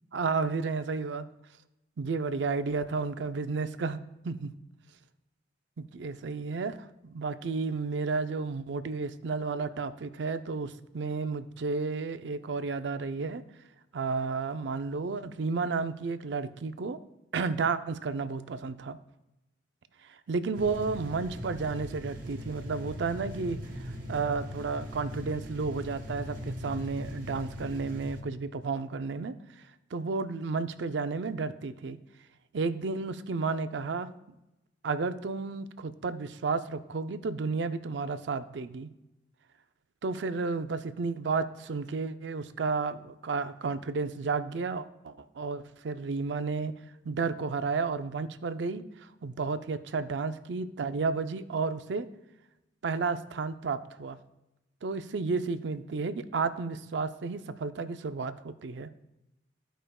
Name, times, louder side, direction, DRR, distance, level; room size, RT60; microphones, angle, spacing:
voice 1, 0.1-1.3 2.0-4.0 4.2-4.5 5.8-13.4 13.9-17.0 17.3-19.0 20.0-29.3 29.9-32.0 32.5-34.1 34.8-38.9 40.0-46.7 47.0-52.1 52.8-54.2 54.8-58.9, right 4 dB, 65° right, 11 dB, 0.5 m, -32 dB
sound 1, 20.5-28.2, equal, 50° right, 1.3 m, -40 dB
14.5 x 5.1 x 2.3 m, 0.92 s
head